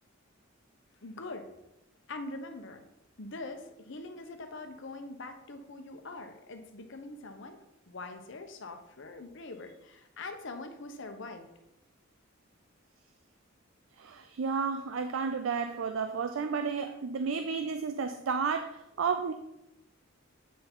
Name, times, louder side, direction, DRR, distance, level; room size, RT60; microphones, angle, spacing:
voice 1, 1.0-1.5 2.1-2.8 3.2-7.6 7.9-11.4, left 2 dB, 65° left, 6 dB, 0.9 m, -43 dB
voice 2, 14.0-19.3, right 5 dB, 75° right, 9 dB, 0.4 m, -32 dB
8.4 x 3.9 x 4.4 m, 0.87 s
head